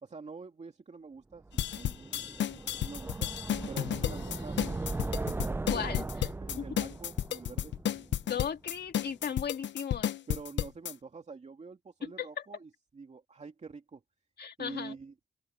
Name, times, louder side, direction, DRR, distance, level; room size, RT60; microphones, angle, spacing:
voice 1, 0.0-2.3 2.8-3.3 3.7-4.6 6.4-7.7 10.3-14.0 14.6-15.1, right 4 dB, 35° right, 2.6 m, -46 dB
sound 1, 1.5-8.5, right 2 dB, 10° right, 0.4 m, -38 dB
sound 2, 1.6-10.9, left 11 dB, 80° left, 0.8 m, -32 dB
voice 2, 5.7-6.3 6.6-6.7 8.3-10.1 12.0-12.3 14.4-14.9, left 8 dB, 60° left, 2.1 m, -36 dB
open air
cardioid pair, 95°, 19 cm